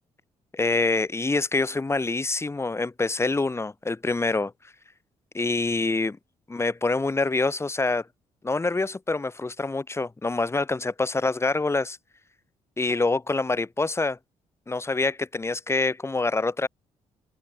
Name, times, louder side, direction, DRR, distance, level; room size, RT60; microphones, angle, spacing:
voice 1, 0.5-4.5 5.3-6.2 6.5-8.1 8.4-12.0 12.8-14.2 14.7-16.7, left 3 dB, 20° left, 3.8 m, -26 dB
cardioid pair, 95°, 13 cm